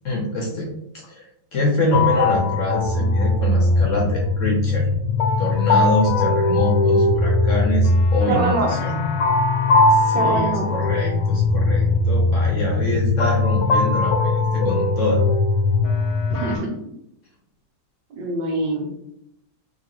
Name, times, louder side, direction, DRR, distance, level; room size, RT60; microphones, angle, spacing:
voice 1, 0.0-0.7 1.1-1.3 1.5-4.9 5.4-9.1 9.9-15.2, left 1 dB, 60° left, -2 dB, 0.9 m, -25 dB
sound 1, 1.9-16.6, left 2 dB, 80° left, 1.2 m, -20 dB
voice 2, 8.3-8.7 10.1-10.7 16.3-16.7 18.1-18.9, right 2 dB, 85° right, 1 dB, 1.6 m, -24 dB
3.9 x 2.9 x 2.9 m, 0.78 s
omnidirectional pair, 1.9 m